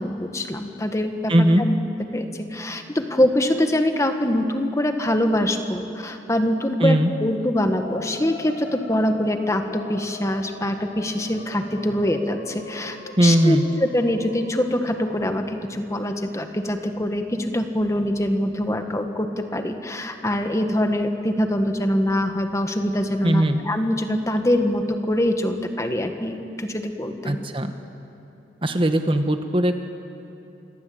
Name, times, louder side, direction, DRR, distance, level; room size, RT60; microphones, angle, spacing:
voice 1, 0.0-1.8 2.1-27.4, left 1 dB, 15° left, 6 dB, 1.6 m, -24 dB
voice 2, 1.3-1.6 6.8-7.1 13.2-13.6 23.2-23.6 27.2-27.7 28.6-29.8, right 1 dB, 30° right, 7 dB, 1.2 m, -19 dB
sound 1, 7.8-15.4, left 2 dB, 80° left, 3.0 m, -41 dB
28.0 x 21.5 x 8.8 m, 3.0 s
head